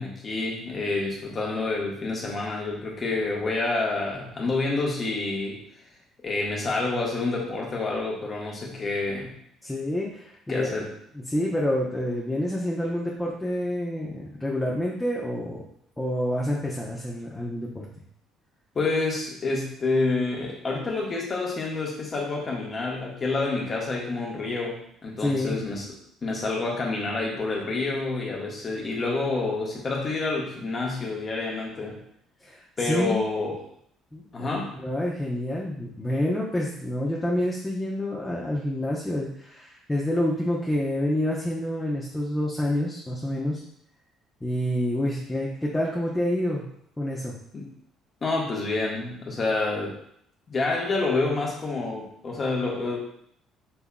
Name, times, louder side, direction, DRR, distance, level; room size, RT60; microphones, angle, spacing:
voice 1, 0.0-5.6 6.2-9.4 10.5-10.9 18.7-25.9 26.2-32.0 32.8-33.6 34.3-34.8 47.5-47.7 48.2-50.0 50.5-53.0, left 3 dB, 35° left, -1 dB, 1.3 m, -28 dB
voice 2, 9.6-10.7 11.1-15.6 16.0-17.9 25.2-25.6 32.4-33.2 34.1-43.6 44.4-46.7 47.0-47.4, left 1 dB, 10° left, -4 dB, 0.9 m, -28 dB
5.6 x 3.4 x 2.3 m, 0.67 s
figure-of-eight pair, 50°, 0 cm